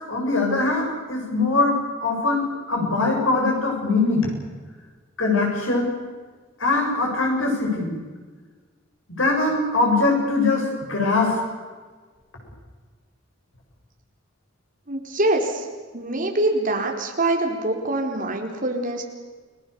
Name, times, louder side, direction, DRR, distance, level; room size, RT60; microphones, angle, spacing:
voice 1, 0.1-4.3 5.2-5.9 6.6-7.9 9.1-11.4, left 3 dB, 80° left, 0 dB, 8.0 m, -22 dB
voice 2, 14.9-15.7 15.9-19.0, right 2 dB, 45° right, 1 dB, 4.2 m, -24 dB
30.0 x 19.5 x 7.0 m, 1.4 s
head